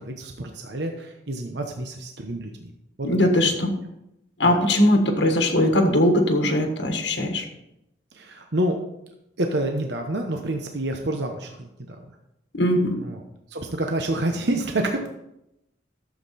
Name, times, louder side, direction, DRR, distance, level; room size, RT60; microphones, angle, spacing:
voice 1, 0.0-2.7 3.0-3.6 4.4-4.6 8.1-8.8 9.4-12.0 12.8-13.2 13.5-15.1, right 1 dB, 65° right, 3 dB, 1.1 m, -28 dB
voice 2, 3.0-3.8 4.4-7.4 12.5-13.0, left 1 dB, 75° left, 4 dB, 1.6 m, -20 dB
12.5 x 7.5 x 4.3 m, 0.86 s
head